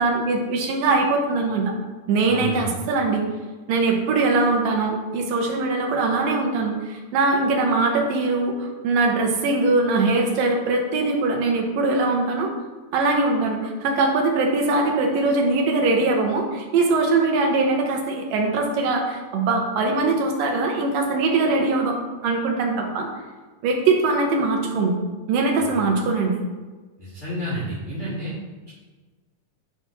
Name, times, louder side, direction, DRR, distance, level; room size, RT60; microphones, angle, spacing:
voice 1, 0.0-1.7 2.1-3.2 3.7-12.5 12.9-22.0 22.2-23.1 23.6-25.0 25.3-26.4, right 3 dB, 85° right, 1 dB, 2.7 m, -21 dB
voice 2, 2.3-2.7 25.6-25.7 27.0-28.3, right 1 dB, 15° left, -11 dB, 2.1 m, -30 dB
10.5 x 5.7 x 3.1 m, 1.3 s
omnidirectional pair, 3.9 m